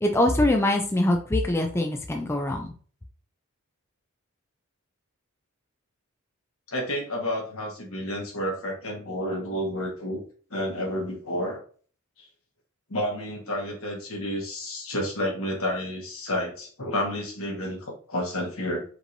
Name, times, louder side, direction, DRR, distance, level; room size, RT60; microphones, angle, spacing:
voice 1, 0.0-2.7, left 1 dB, 10° left, 3 dB, 0.4 m, -23 dB
voice 2, 6.7-10.2 10.5-11.6 12.2-12.3 12.9-18.8, equal, 75° left, -1 dB, 1.6 m, -30 dB
5.1 x 3.2 x 2.6 m, 0.42 s
head